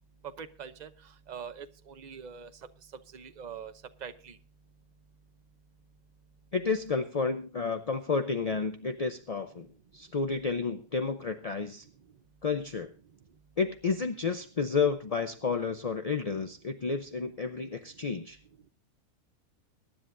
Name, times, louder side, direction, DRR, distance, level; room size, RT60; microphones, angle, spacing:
voice 1, 0.4-0.9 1.3-1.7 2.0-2.5 3.1-3.7 4.0-4.3, right 7 dB, 40° right, 10 dB, 0.6 m, -42 dB
voice 2, 6.5-9.7 9.9-11.8 12.4-12.9 13.6-18.4, left 5 dB, 45° left, 7 dB, 0.5 m, -31 dB
23.0 x 10.5 x 2.6 m, 0.35 s
omnidirectional pair, 1.6 m